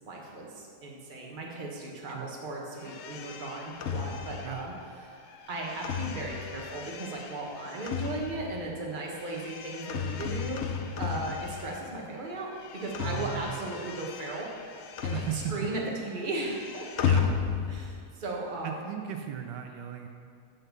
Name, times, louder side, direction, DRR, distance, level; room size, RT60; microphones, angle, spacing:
voice 1, 0.0-4.7 5.0-10.7 11.0-14.5 15.0-16.9 17.7-18.8, right 2 dB, 30° right, -2 dB, 1.3 m, -36 dB
sound 1, 2.8-12.1 12.3-18.0, left 7 dB, 70° left, 0.6 m, -35 dB
voice 2, 13.0-13.5 15.1-15.7 17.0-17.3 18.6-20.1, right 9 dB, 80° right, 5 dB, 1.2 m, -36 dB
7.3 x 6.6 x 7.1 m, 2.2 s
omnidirectional pair, 1.9 m